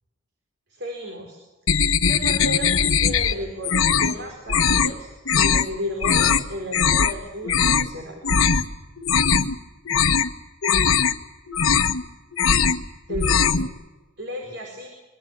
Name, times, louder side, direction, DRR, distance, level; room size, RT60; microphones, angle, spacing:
voice 1, 0.7-1.4 2.0-2.7 3.0-8.2 13.1-13.5 14.2-14.9, left 1 dB, 55° right, 2 dB, 5.1 m, -33 dB
sound 1, 1.7-3.3 3.6-4.2 4.5-4.9 5.3-5.7 6.0-6.4 6.7-7.1 7.4-7.9 8.2-8.6 9.0-9.6 9.9-10.3 10.6-11.1 11.5-12.0 12.3-12.8 13.1-13.7, left 6 dB, 85° left, 1.5 m, -20 dB
26.0 x 23.5 x 7.5 m, 1.1 s
head